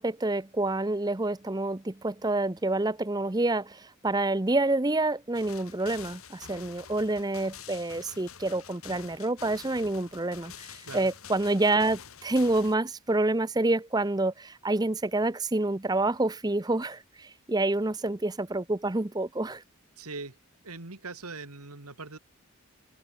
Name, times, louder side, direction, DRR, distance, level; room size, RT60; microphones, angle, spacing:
voice 1, 0.0-19.6, right 2 dB, 15° right, 0.6 m, -28 dB
sound 1, 5.3-12.7, left 7 dB, 75° left, 3.0 m, -47 dB
voice 2, 20.0-20.4 20.6-22.2, right 3 dB, 85° right, 2.9 m, -41 dB
head